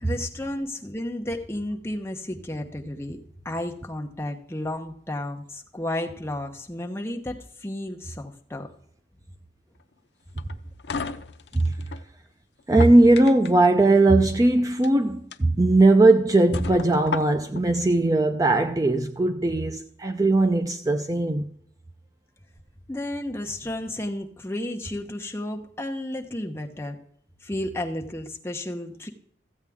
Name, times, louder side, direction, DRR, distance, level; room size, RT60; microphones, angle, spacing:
voice 1, 0.0-3.2 3.4-8.7 22.9-27.0 27.4-29.1, left 1 dB, 15° left, 0.9 m, -32 dB
sound 1, 10.4-12.0 12.6-13.7 14.7-14.9 15.3-15.4 15.9-16.0 16.5-17.6, left 5 dB, 70° left, 0.6 m, -34 dB
voice 2, 12.7-21.5, right 2 dB, 20° right, 0.4 m, -19 dB
14.5 x 8.1 x 3.6 m
head